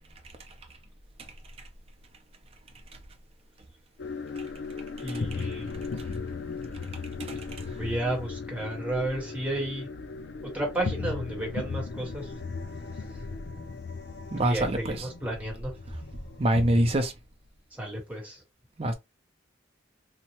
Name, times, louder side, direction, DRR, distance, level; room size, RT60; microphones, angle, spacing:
sound 1, 4.0-16.9, left 4 dB, 60° left, 0.4 m, -37 dB
voice 1, 5.0-5.9 7.7-9.9 10.5-12.3 13.0-13.2 14.4-15.7 17.7-18.4, right 1 dB, 10° right, 1.0 m, -32 dB
voice 2, 14.3-15.0 16.4-17.1 18.8-18.9, right 1 dB, 30° right, 0.5 m, -24 dB
2.9 x 2.1 x 2.9 m
head